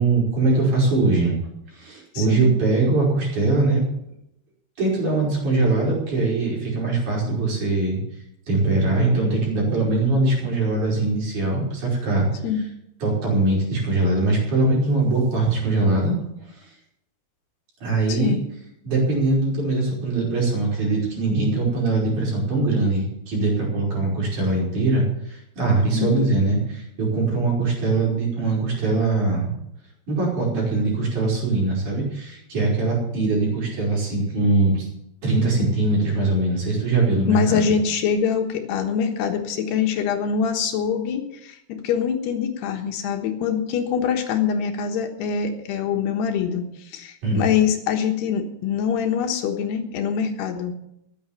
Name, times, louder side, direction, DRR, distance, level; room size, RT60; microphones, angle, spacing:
voice 1, 0.0-1.3 1.7-3.8 4.8-8.0 8.5-12.3 13.0-16.2 17.8-18.3 18.8-25.0 25.3-29.5 30.1-34.8 35.2-37.7 47.2-47.4, right 2 dB, 45° right, -4 dB, 6.5 m, -22 dB
voice 2, 2.1-2.5 12.4-12.6 18.1-18.4 25.9-26.2 37.3-50.7, left 7 dB, 80° left, 4 dB, 3.3 m, -24 dB
14.5 x 9.6 x 7.2 m, 0.79 s
omnidirectional pair, 4.8 m